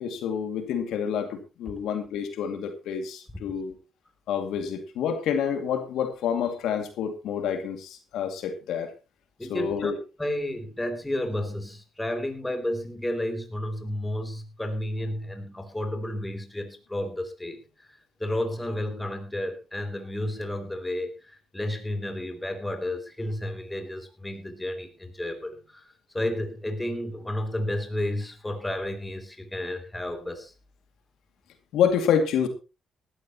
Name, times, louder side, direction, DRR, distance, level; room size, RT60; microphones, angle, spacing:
voice 1, 0.0-3.7 4.3-8.9 9.5-10.0 31.7-32.5, left 7 dB, 85° left, 6 dB, 2.3 m, -28 dB
voice 2, 9.4-9.9 10.2-17.9 18.2-30.5, left 1 dB, 10° left, 6 dB, 3.1 m, -32 dB
18.0 x 12.5 x 3.0 m, 0.30 s
cardioid pair, 90°, 0 cm